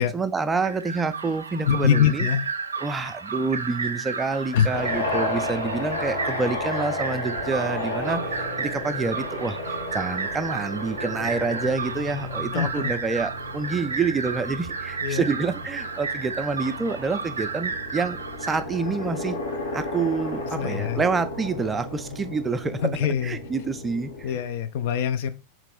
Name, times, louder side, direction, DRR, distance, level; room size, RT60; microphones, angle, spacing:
voice 1, 0.1-2.3 2.8-19.4 19.7-24.4, right 4 dB, 15° right, 0.4 m, -28 dB
sound 1, 0.6-18.6, right 4 dB, 75° right, 0.4 m, -33 dB
voice 2, 1.7-2.4 4.5-4.7 12.5-12.9 15.0-15.2 20.6-21.0 22.8-23.4 24.2-25.3, left 8 dB, 50° left, 0.5 m, -23 dB
sound 2, 4.7-24.4, left 2 dB, 80° left, 1.5 m, -33 dB
3.8 x 3.1 x 4.4 m
figure-of-eight pair, 90°, 0 cm